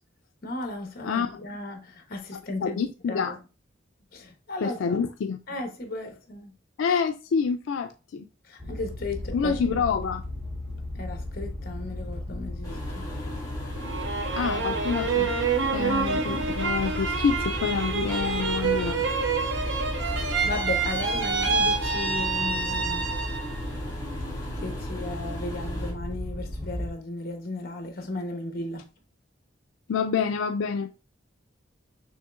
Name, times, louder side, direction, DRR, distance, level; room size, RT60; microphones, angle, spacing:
voice 1, 0.4-2.8 3.1-3.4 4.1-5.0 5.5-6.5 8.5-9.8 10.9-13.1 20.4-23.1 24.5-28.8, left 2 dB, 50° left, 1.0 m, -35 dB
voice 2, 1.0-1.4 2.3-3.3 4.6-5.4 6.8-8.3 9.3-10.2 14.3-15.3 15.7-19.1 29.9-30.9, left 6 dB, 85° left, 0.4 m, -27 dB
sound 1, 8.6-26.9, left 1 dB, 5° right, 0.9 m, -35 dB
sound 2, 12.6-25.9, equal, 20° left, 1.4 m, -39 dB
sound 3, 13.8-23.6 24.0-24.7, right 5 dB, 70° right, 0.7 m, -28 dB
6.4 x 3.1 x 2.4 m
head